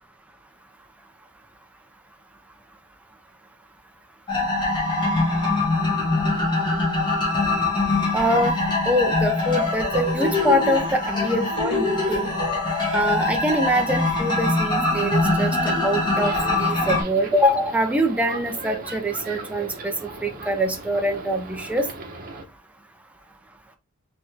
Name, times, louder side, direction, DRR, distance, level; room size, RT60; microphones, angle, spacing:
sound 1, 4.3-17.0, left 2 dB, 20° left, 1.4 m, -23 dB
voice 1, 8.1-8.6 8.9-12.3 12.9-20.0 20.2-21.9, equal, 5° right, 4 dB, 0.5 m, -24 dB
sound 2, 16.2-22.4, right 2 dB, 45° right, 0.9 m, -37 dB
4.2 x 2.9 x 3.4 m, 0.28 s
head